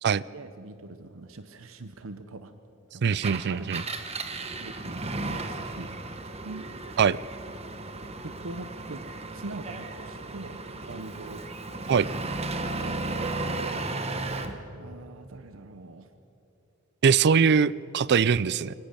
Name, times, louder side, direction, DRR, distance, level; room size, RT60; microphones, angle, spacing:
voice 1, 0.3-2.5 2.9-3.2 3.5-3.9 4.6-5.9 6.2-6.7 8.2-9.0 9.3-11.4 11.8-11.9 12.2-13.7 14.0-14.4 14.7-16.1, right 2 dB, 70° right, 10 dB, 0.8 m, -43 dB
voice 2, 3.0-3.8 7.0-7.2 11.9-12.1 17.0-18.7, right 6 dB, 55° right, 21 dB, 0.4 m, -22 dB
Engine, 3.1-14.6, right 2 dB, 30° right, 1.2 m, -35 dB
24.0 x 19.5 x 6.8 m, 2.9 s
head